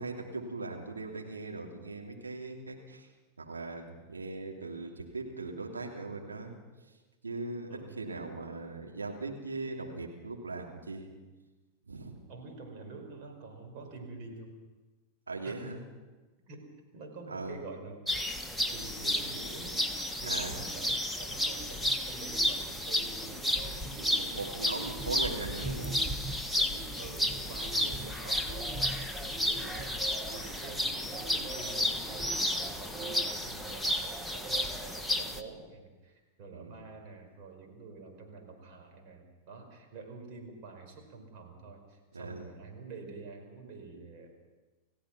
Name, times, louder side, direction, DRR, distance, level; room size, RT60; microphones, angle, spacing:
voice 1, 0.0-3.1 3.4-6.5 7.2-11.1 11.9-12.1 15.3-15.8 17.3-17.6 20.3-20.6 24.1-26.0 36.5-36.7 42.1-42.5, right 3 dB, 75° right, 1 dB, 3.0 m, -39 dB
voice 2, 12.3-14.5 15.4-15.6 16.5-18.1 18.7-19.8 20.2-24.7 26.7-44.4, right 3 dB, 45° right, 4 dB, 5.0 m, -47 dB
sound 1, 18.1-35.4, left 1 dB, ahead, 1.4 m, -32 dB
30.0 x 15.5 x 6.1 m, 1.2 s
figure-of-eight pair, 90°, 0 cm